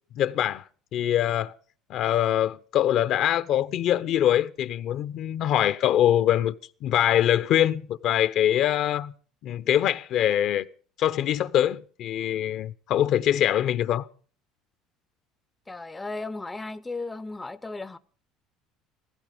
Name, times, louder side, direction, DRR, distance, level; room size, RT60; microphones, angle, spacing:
voice 1, 0.1-0.6 0.9-1.5 1.9-6.5 6.8-9.1 9.4-10.7 11.0-14.1, left 11 dB, 55° left, 0.9 m, -23 dB
voice 2, 15.7-18.0, left 3 dB, 15° left, 0.7 m, -35 dB
16.0 x 16.0 x 5.1 m
cardioid pair, 120°, 0 cm